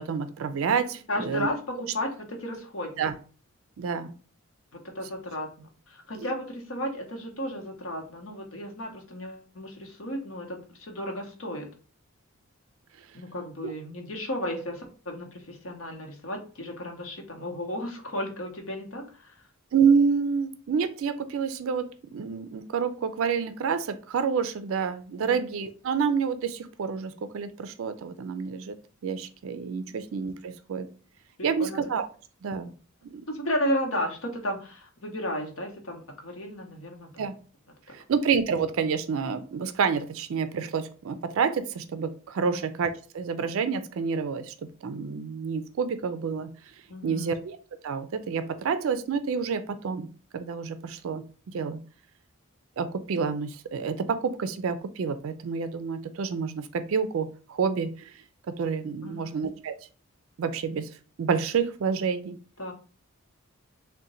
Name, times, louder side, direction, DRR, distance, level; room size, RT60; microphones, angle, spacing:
voice 1, 0.0-1.5 3.0-3.1 3.8-4.1 13.6-13.7 19.7-28.8 29.0-30.9 31.4-32.1 32.4-32.7 33.1-33.2 37.2-37.3 37.9-44.5 44.8-46.5 47.0-47.6 47.8-50.1 50.3-51.2 51.5-51.8 52.8-58.1 58.6-59.7 60.4-60.9 61.2-62.4, right 6 dB, 70° right, 11 dB, 0.4 m, -28 dB
voice 2, 1.1-3.1 4.7-11.7 13.1-19.3 25.2-25.4 31.4-31.8 33.3-37.3 37.9-38.0 42.4-42.6 46.9-47.4 59.0-59.4 62.6-62.7, equal, 70° left, 2 dB, 0.9 m, -34 dB
3.7 x 2.1 x 4.1 m, 0.38 s
head